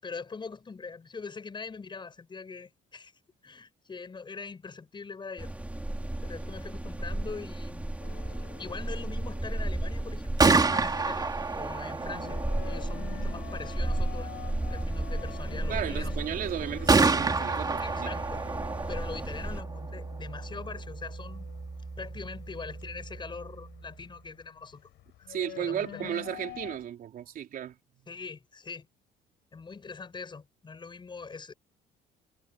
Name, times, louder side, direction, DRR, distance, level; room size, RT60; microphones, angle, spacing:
voice 1, 0.0-3.1 3.4-5.5 6.2-7.9 8.6-12.4 12.6-14.4 14.7-16.3 17.8-18.4 18.9-21.5 22.0-24.9 25.2-25.3 25.6-26.1 28.1-28.9 29.5-31.5, left 4 dB, 25° left, 7.3 m, -42 dB
sound 1, 5.4-19.6, right 1 dB, 10° right, 3.3 m, -35 dB
sound 2, 8.0-26.9, left 15 dB, 80° left, 6.5 m, -47 dB
Gunshot gunfire, 10.1-24.0, right 4 dB, 25° right, 3.2 m, -30 dB
voice 2, 15.7-18.1 25.3-27.7, right 10 dB, 60° right, 3.9 m, -34 dB
cardioid pair, 110°, 17 cm